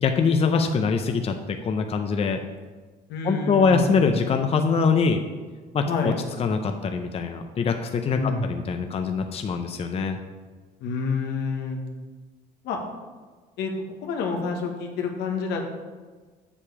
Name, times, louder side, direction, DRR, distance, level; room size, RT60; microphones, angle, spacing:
voice 1, 0.0-2.4 3.2-5.2 5.7-6.1 6.4-10.2, left 5 dB, 35° left, 6 dB, 0.6 m, -23 dB
voice 2, 3.1-3.9 5.8-6.2 8.1-8.5 10.8-11.8 12.6-12.8 13.6-13.7 14.0-15.6, left 4 dB, 80° left, 2 dB, 1.4 m, -28 dB
7.5 x 6.8 x 4.9 m, 1.4 s
cardioid pair, 110°, 17 cm